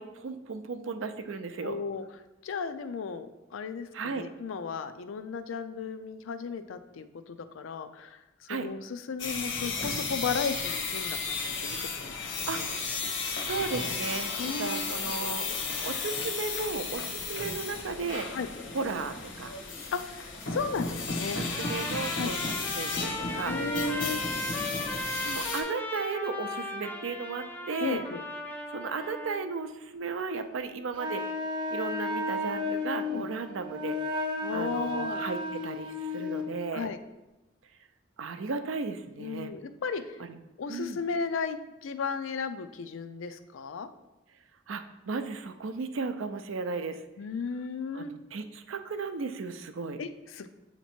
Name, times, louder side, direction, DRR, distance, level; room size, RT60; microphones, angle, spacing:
voice 1, 0.0-1.8 3.9-4.3 8.5-8.7 12.5-12.6 13.4-14.3 14.6-18.3 18.7-19.5 21.3-23.6 25.3-28.0 28.7-31.2 31.7-34.0 34.5-36.9 38.2-39.5 40.3-40.4 40.7-41.0 44.7-47.0 47.9-50.0, right 4 dB, 85° right, 9 dB, 0.5 m, -35 dB
voice 2, 1.6-2.0 2.4-8.2 8.5-12.7 14.4-14.8 18.3-18.5 19.9-21.4 22.2-22.3 23.5-24.2 27.8-28.2 33.1-33.3 34.4-35.2 36.7-37.0 39.2-40.2 40.6-41.6 41.8-43.9 47.2-48.1 50.0-50.5, left 5 dB, 85° left, 10 dB, 0.4 m, -35 dB
sound 1, 9.2-25.6, left 4 dB, 65° left, 0.8 m, -34 dB
Trumpet, 21.5-29.4, left 1 dB, 10° left, 0.5 m, -37 dB
Wind instrument woodwind instrument, 30.9-36.5, left 2 dB, 25° right, 0.7 m, -33 dB
8.0 x 2.9 x 4.3 m, 1.0 s
head